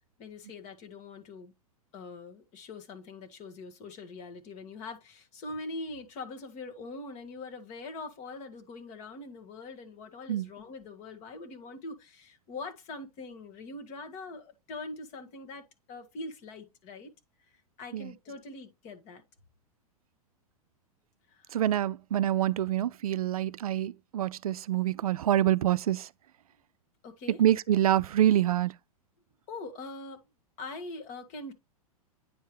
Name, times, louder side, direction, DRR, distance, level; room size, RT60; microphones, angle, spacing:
voice 1, 0.2-1.5 1.9-17.1 17.4-17.5 17.8-19.2 21.3-21.5 27.0-27.4 29.5-30.3 30.6-31.5, left 3 dB, 40° left, 1.7 m, -43 dB
voice 2, 21.5-26.1 27.4-28.7, right 12 dB, 70° right, 0.4 m, -26 dB
9.5 x 4.5 x 3.1 m
figure-of-eight pair, 100°, 19 cm